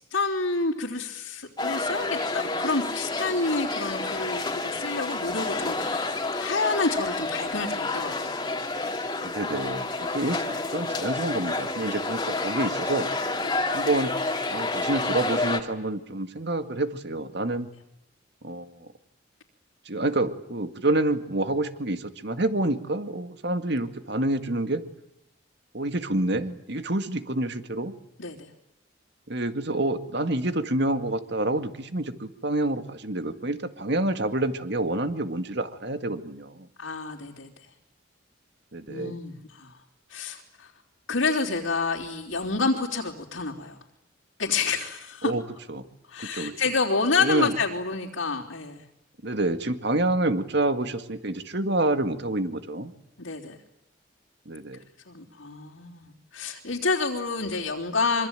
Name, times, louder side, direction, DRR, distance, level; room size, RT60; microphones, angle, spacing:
voice 1, 0.1-8.4 13.4-13.6 28.2-28.5 36.8-37.5 38.9-39.8 40.1-40.7 41.1-43.8 44.4-45.3 46.1-48.8 53.2-53.6 55.1-58.3, left 3 dB, 80° left, -5 dB, 3.6 m, -29 dB
sound 1, 1.6-15.6, left 2 dB, 20° left, 2.5 m, -29 dB
voice 2, 9.2-13.1 13.7-14.1 14.5-17.7 18.4-18.9 19.9-24.8 25.7-27.9 29.3-36.7 38.7-39.2 45.2-45.4 45.7-45.8 46.2-46.6 47.2-47.5 49.2-52.9 54.5-54.8, right 2 dB, 55° right, 9 dB, 2.0 m, -28 dB
25.5 x 24.5 x 9.1 m, 0.83 s
head